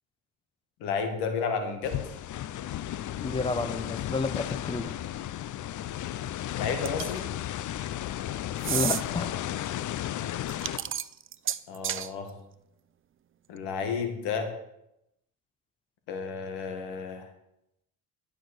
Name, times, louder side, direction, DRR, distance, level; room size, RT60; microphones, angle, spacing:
voice 1, 0.8-1.9 6.6-7.3 11.7-12.3 13.5-14.5 16.1-17.3, left 5 dB, 85° left, 6 dB, 2.0 m, -31 dB
sound 1, 1.8-10.8, left 12 dB, 50° left, 0.6 m, -34 dB
voice 2, 3.2-4.9 8.7-9.4, left 3 dB, 15° left, 11 dB, 0.9 m, -30 dB
sound 2, 6.9-7.2 8.6-9.0 10.5-12.1, right 9 dB, 35° right, 0.6 m, -31 dB
12.0 x 6.3 x 6.5 m, 0.83 s
supercardioid pair, 75°, 38 cm